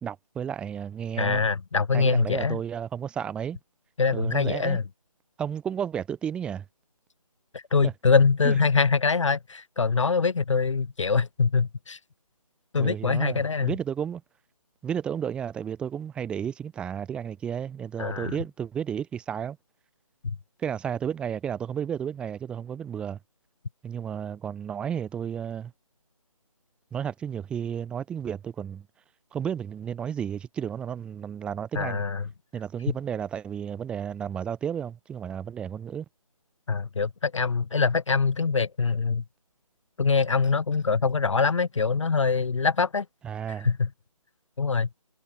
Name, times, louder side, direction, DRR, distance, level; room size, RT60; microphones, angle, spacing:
voice 1, 0.0-1.4 1.9-3.6 4.1-4.8 5.4-6.6 7.8-7.9 8.4-8.6 12.8-14.2 14.8-19.6 20.6-23.2 23.8-25.7 26.9-28.9 29.3-32.0 32.5-36.1 43.2-43.7, right 8 dB, 5° right, 2.0 m, -32 dB
voice 2, 1.2-2.6 4.0-4.8 7.5-12.0 12.7-13.7 18.0-18.4 31.7-32.2 36.7-39.2 40.0-43.0 43.6-43.9 44.6-44.9, left 5 dB, 55° left, 1.0 m, -24 dB
figure-of-eight pair, 165°, 19 cm